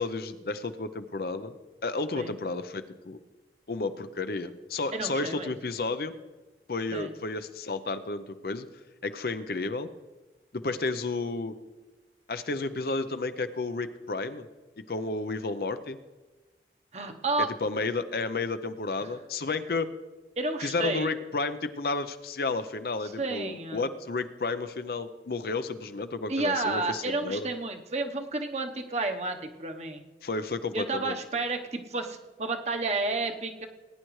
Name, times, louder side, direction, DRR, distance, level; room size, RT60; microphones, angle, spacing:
voice 1, 0.0-1.6 1.8-3.2 3.7-6.1 6.7-8.7 9.0-9.9 10.5-11.5 12.3-14.5 14.8-16.0 17.6-19.9 20.6-27.5 30.2-31.2, left 3 dB, 55° left, 11 dB, 0.6 m, -32 dB
voice 2, 4.9-5.5 6.9-7.1 16.9-17.5 20.4-21.1 23.2-23.9 26.3-30.0 30.7-33.7, right 3 dB, 40° right, 5 dB, 0.9 m, -31 dB
19.0 x 10.0 x 3.2 m, 1.2 s
head